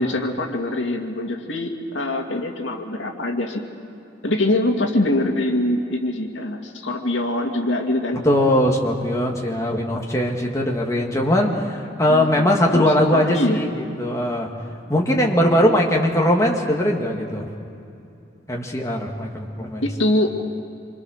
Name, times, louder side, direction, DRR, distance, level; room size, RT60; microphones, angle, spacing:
voice 1, 0.0-3.6 4.2-8.2 12.1-13.6 19.8-20.3, left 1 dB, 90° left, 3 dB, 2.2 m, -23 dB
voice 2, 8.2-14.5 14.9-17.5 18.5-19.8, left 1 dB, 15° left, 0 dB, 2.1 m, -20 dB
27.0 x 25.5 x 6.5 m, 2.7 s
head